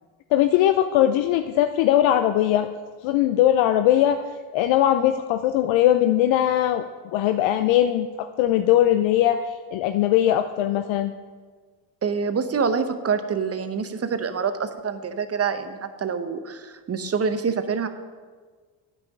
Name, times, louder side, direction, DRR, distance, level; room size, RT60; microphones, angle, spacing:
voice 1, 0.3-2.7 3.0-4.2 4.5-6.8 7.1-11.1, left 12 dB, 70° left, 9 dB, 0.6 m, -20 dB
voice 2, 12.0-17.9, right 5 dB, 30° right, 10 dB, 0.8 m, -26 dB
8.8 x 5.5 x 6.5 m, 1.5 s
supercardioid pair, 70°, 48 cm